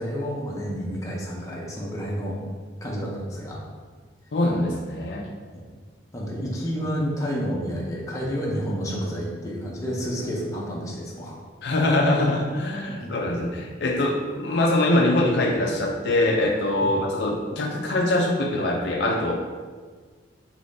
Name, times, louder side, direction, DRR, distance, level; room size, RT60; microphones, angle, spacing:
voice 1, 0.0-2.4 2.8-3.6 5.5-5.7 6.1-11.4 12.9-13.1 16.8-17.0, equal, 15° left, -4 dB, 0.7 m, -30 dB
voice 2, 4.3-5.3 11.6-19.4, left 1 dB, 60° left, 1 dB, 0.4 m, -23 dB
5.3 x 3.0 x 2.6 m, 1.5 s
head